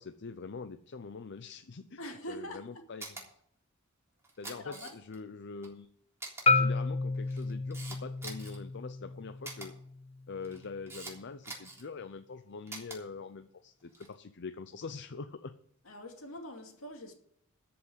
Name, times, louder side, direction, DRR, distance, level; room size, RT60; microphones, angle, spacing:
voice 1, 0.0-2.0 2.3-3.2 4.4-5.9 6.5-9.7 10.3-15.5, left 4 dB, 55° left, 0.6 m, -44 dB
voice 2, 2.0-2.9 4.6-4.9 15.8-17.1, equal, 75° left, 2.4 m, -44 dB
Camera, 3.0-3.2 4.2-5.2 5.6-5.7 6.2-6.4 7.1-8.6 9.4-9.7 10.4-11.1 11.4-11.8 12.7-13.0 13.8-14.1, right 2 dB, 15° right, 3.5 m, -44 dB
Marimba xylophone, 6.5-10.6, left 3 dB, 30° left, 0.9 m, -31 dB
13.5 x 6.0 x 8.0 m
head